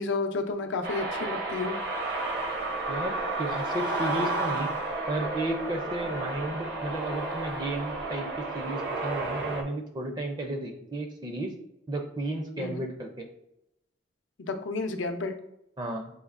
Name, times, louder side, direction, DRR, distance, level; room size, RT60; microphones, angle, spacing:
voice 1, 0.0-1.8 12.6-12.8 14.4-15.3, left 3 dB, 85° left, 6 dB, 0.6 m, -31 dB
sound 1, 0.8-9.6, right 2 dB, 55° right, 0.7 m, -32 dB
voice 2, 2.9-4.7 5.1-11.5 11.9-13.3 15.8-16.1, right 1 dB, 25° right, 3 dB, 0.4 m, -33 dB
6.4 x 2.8 x 2.5 m, 0.84 s
head